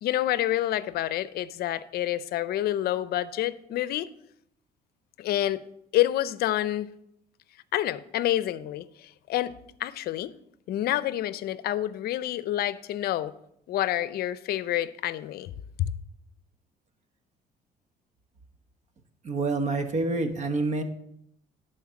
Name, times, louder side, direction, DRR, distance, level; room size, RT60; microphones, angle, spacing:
voice 1, 0.0-4.1 5.2-5.7 5.9-6.9 7.7-10.3 10.7-13.3 13.7-15.5 15.8-15.9, left 13 dB, 65° left, 0.6 m, -28 dB
voice 2, 19.2-20.8, right 3 dB, 45° right, 1.2 m, -27 dB
11.0 x 4.3 x 7.5 m
cardioid pair, 110°, 17 cm